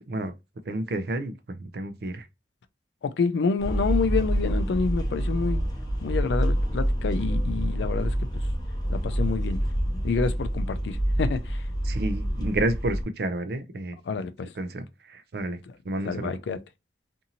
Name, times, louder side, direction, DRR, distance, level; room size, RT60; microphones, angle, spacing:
voice 1, 0.7-2.2 11.8-14.0 14.6-15.6 15.8-16.4, right 2 dB, 60° right, 0.4 m, -30 dB
voice 2, 3.0-5.6 6.0-8.1 8.9-9.6 10.0-11.6 14.1-14.5 16.1-16.6, left 4 dB, 75° left, 0.3 m, -28 dB
sound 1, 3.6-13.0, equal, 20° left, 0.6 m, -27 dB
2.8 x 2.6 x 2.6 m
head